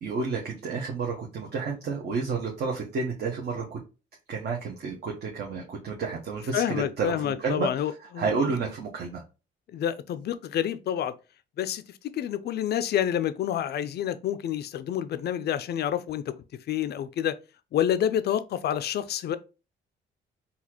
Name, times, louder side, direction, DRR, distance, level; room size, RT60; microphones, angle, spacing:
voice 1, 0.0-3.8 4.3-7.7 8.2-9.2, right 4 dB, 55° right, 0.8 m, -30 dB
voice 2, 6.5-8.3 9.7-11.1 11.6-16.3 16.7-17.4 17.7-19.4, left 10 dB, 55° left, 0.4 m, -28 dB
4.0 x 2.4 x 2.9 m
cardioid pair, 90°, 20 cm